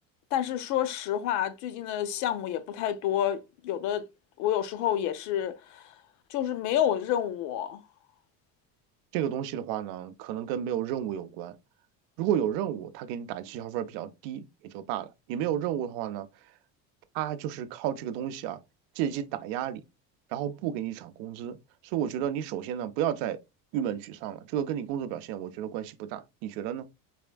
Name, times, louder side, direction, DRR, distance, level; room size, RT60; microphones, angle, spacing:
voice 1, 0.3-4.1 4.4-5.9 6.3-7.8, left 11 dB, 55° left, 0.5 m, -29 dB
voice 2, 9.1-11.6 12.2-16.3 17.1-18.6 19.0-19.8 20.3-21.6 21.8-23.4 23.7-26.8, right 10 dB, 85° right, 0.6 m, -32 dB
4.2 x 3.4 x 2.2 m
cardioid pair, 175°, 35 cm